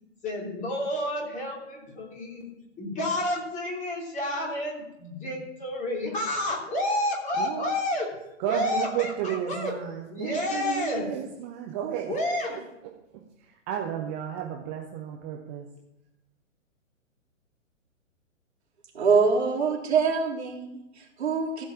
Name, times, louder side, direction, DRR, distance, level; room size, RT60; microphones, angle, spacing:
voice 1, 0.2-2.5 2.8-8.1 8.5-9.7 10.1-11.1 12.1-12.6, left 1 dB, 20° left, -2 dB, 3.0 m, -30 dB
voice 2, 7.4-7.7 8.4-12.1 13.4-15.7, right 9 dB, 10° right, 1 dB, 0.5 m, -32 dB
voice 3, 18.9-21.6, right 5 dB, 55° right, -3 dB, 3.6 m, -24 dB
15.5 x 5.3 x 7.3 m, 0.90 s
figure-of-eight pair, 120°, 39 cm